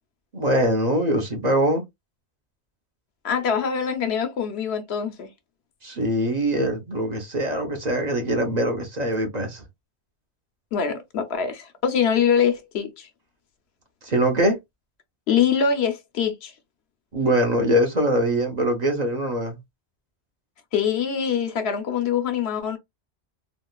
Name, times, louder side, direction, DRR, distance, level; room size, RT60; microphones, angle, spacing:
voice 1, 0.3-1.8 5.8-9.6 14.0-14.6 17.1-19.6, right 1 dB, 45° right, 0.9 m, -23 dB
voice 2, 3.2-5.3 10.7-13.1 15.3-16.5 20.7-22.8, left 7 dB, 70° left, 0.9 m, -24 dB
3.7 x 2.4 x 2.3 m
omnidirectional pair, 1.1 m